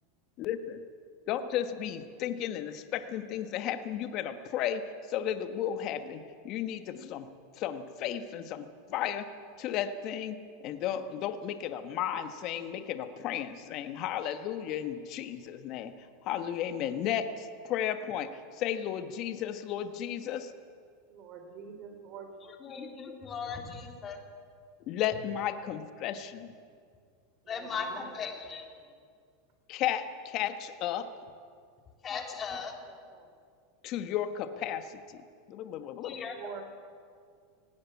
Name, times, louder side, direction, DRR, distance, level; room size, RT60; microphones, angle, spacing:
voice 1, 0.4-0.8 1.3-7.3 7.6-9.3 9.6-15.9 16.2-20.5 24.9-26.5 29.7-31.1 33.8-35.2 35.5-36.2, left 10 dB, 50° left, 9 dB, 1.4 m, -34 dB
voice 2, 21.1-22.5 27.4-28.1 28.4-28.9 32.8-33.3 36.3-36.6, right 6 dB, 50° right, 6 dB, 4.2 m, -47 dB
voice 3, 22.6-24.2 27.5-28.7 32.0-32.8 36.0-36.4, left 5 dB, 30° left, 3 dB, 3.3 m, -38 dB
18.0 x 17.5 x 8.5 m, 2.2 s
hypercardioid pair, 110°, 0 cm